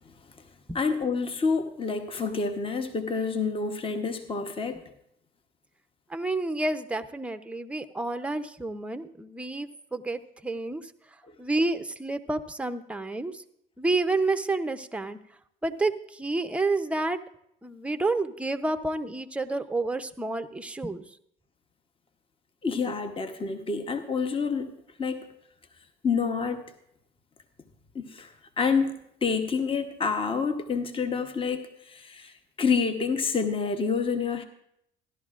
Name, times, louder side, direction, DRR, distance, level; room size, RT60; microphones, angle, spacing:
voice 1, 0.7-4.8 11.3-11.4 22.6-25.3 26.0-26.6 27.9-28.3 28.6-34.4, left 5 dB, 25° left, 1.0 m, -28 dB
voice 2, 6.1-10.9 11.4-13.4 13.8-15.2 15.6-17.2 17.6-21.0, right 2 dB, 5° right, 0.6 m, -29 dB
15.5 x 11.5 x 2.5 m
supercardioid pair, 85°, 21 cm